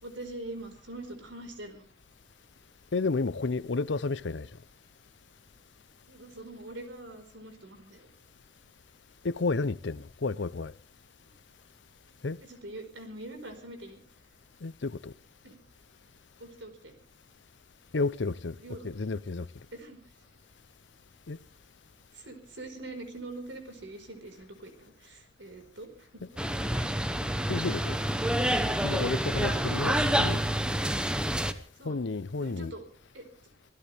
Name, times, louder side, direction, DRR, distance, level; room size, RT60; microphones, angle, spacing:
voice 1, 0.0-1.9 6.1-8.1 12.4-14.0 15.4-15.6 16.4-16.9 18.6-18.9 19.7-20.0 22.1-26.7 29.3-30.4 31.7-32.0 32.4-32.9 33.1-33.2, right 2 dB, 85° right, 4.7 m, -44 dB
voice 2, 2.9-4.5 9.2-10.7 12.2-12.4 14.6-15.1 17.9-19.5 21.3-21.4 27.5-28.0 28.8-30.4 31.8-32.7, left 3 dB, 75° left, 0.7 m, -31 dB
sound 1, 26.4-31.5, right 1 dB, 5° right, 0.9 m, -28 dB
26.0 x 16.0 x 3.4 m
head